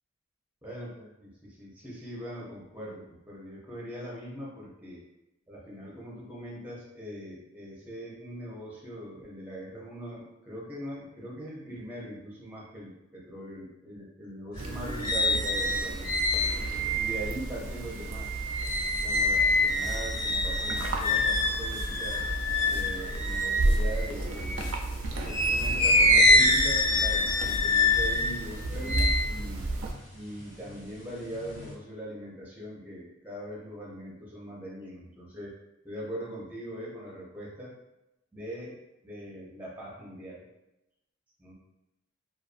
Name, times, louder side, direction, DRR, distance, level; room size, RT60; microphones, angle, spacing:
voice 1, 0.6-1.3 1.6-5.0 5.5-16.1 16.9-18.4 19.0-22.2 22.7-24.7 25.3-29.7 30.1-35.5 35.8-37.7 38.3-38.8 39.0-40.4 41.4-41.5, equal, 10° right, -5 dB, 0.6 m, -41 dB
sound 1, 14.5-24.7 25.2-30.7 31.1-31.7, left 1 dB, 45° left, 1.0 m, -26 dB
sound 2, 14.6-29.9, right 2 dB, 85° right, 0.4 m, -34 dB
sound 3, 19.3-28.2, equal, 60° left, 0.4 m, -37 dB
2.5 x 2.3 x 2.5 m, 0.93 s
head